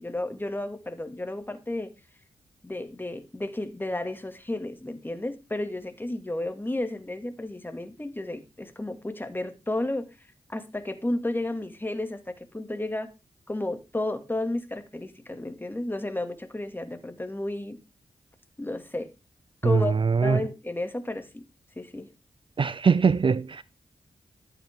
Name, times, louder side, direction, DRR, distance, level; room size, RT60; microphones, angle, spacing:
voice 1, 0.0-1.9 2.6-10.1 10.5-13.1 13.5-17.8 18.6-19.1 19.6-19.9 20.2-21.4 21.8-22.1, left 2 dB, 15° left, 2.4 m, -32 dB
voice 2, 19.6-20.5 22.6-23.6, right 5 dB, 50° right, 0.6 m, -22 dB
13.5 x 9.1 x 3.7 m
cardioid pair, 60°, 12 cm